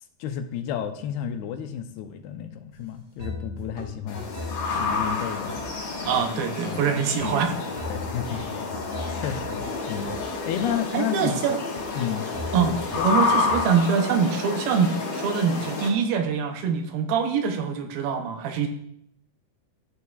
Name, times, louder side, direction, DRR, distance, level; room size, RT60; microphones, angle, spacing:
voice 1, 0.2-4.3 4.8-5.6 6.2-7.5 7.9-8.7 9.1-11.4 11.9-12.3 12.6-13.1 13.4-13.5, left 9 dB, 85° left, 7 dB, 2.7 m, -32 dB
sound 1, 2.7-2.8 3.2-6.3 6.6-6.9 7.2-10.8 11.2-11.9 12.3-13.6, left 1 dB, 20° right, 0.6 m, -38 dB
sound 2, 4.1-15.9, left 4 dB, 60° left, 3.0 m, -29 dB
voice 2, 6.0-7.5 10.9-11.6 12.5-12.8 13.0-18.7, right 6 dB, 75° right, 5 dB, 2.5 m, -24 dB
12.5 x 6.9 x 2.4 m, 0.71 s
omnidirectional pair, 4.4 m